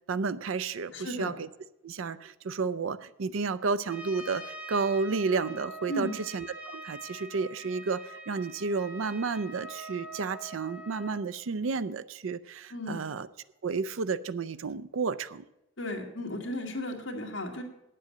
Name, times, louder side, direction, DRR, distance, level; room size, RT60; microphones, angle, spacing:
voice 1, 0.1-1.5 1.8-13.3 13.6-15.4, right 4 dB, 70° right, 15 dB, 0.5 m, -31 dB
voice 2, 0.9-1.3 5.9-6.2 12.7-13.0 15.8-17.6, left 1 dB, 60° left, 1 dB, 2.1 m, -35 dB
Trumpet, 3.8-11.2, right 1 dB, 5° right, 1.1 m, -44 dB
9.4 x 7.6 x 7.7 m, 0.90 s
head